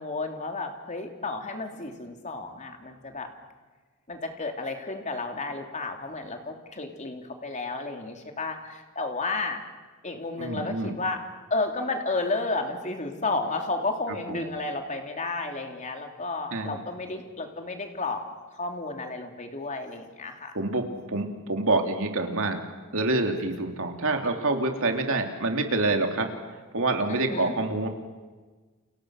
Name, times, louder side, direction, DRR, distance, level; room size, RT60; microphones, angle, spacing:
voice 1, 0.0-3.3 4.1-9.6 10.0-11.2 11.5-18.2 18.5-20.9 27.1-27.5, left 3 dB, 35° left, 4 dB, 3.0 m, -32 dB
voice 2, 10.4-10.9 14.3-14.4 16.5-16.8 20.5-22.6 22.9-26.3 26.7-27.9, right 2 dB, 65° right, 4 dB, 3.1 m, -27 dB
30.0 x 29.5 x 6.5 m, 1.4 s
head